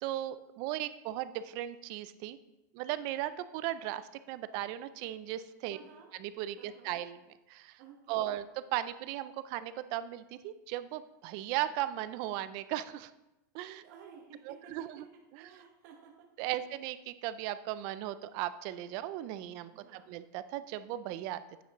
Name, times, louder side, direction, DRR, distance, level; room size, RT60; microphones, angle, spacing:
voice 1, 0.0-2.4 2.7-4.0 4.3-5.8 6.2-7.2 7.5-7.8 8.1-8.4 8.7-13.1 13.5-13.8 14.5-15.1 16.4-21.6, right 13 dB, 40° right, 14 dB, 0.4 m, -37 dB
voice 2, 5.7-6.1 6.6-6.9 7.8-8.3 13.8-14.7 15.4-16.1 16.5-16.7 19.7-20.1, right 7 dB, 55° right, 0 dB, 1.2 m, -54 dB
9.1 x 7.1 x 3.0 m, 0.96 s
supercardioid pair, 160°, 11 cm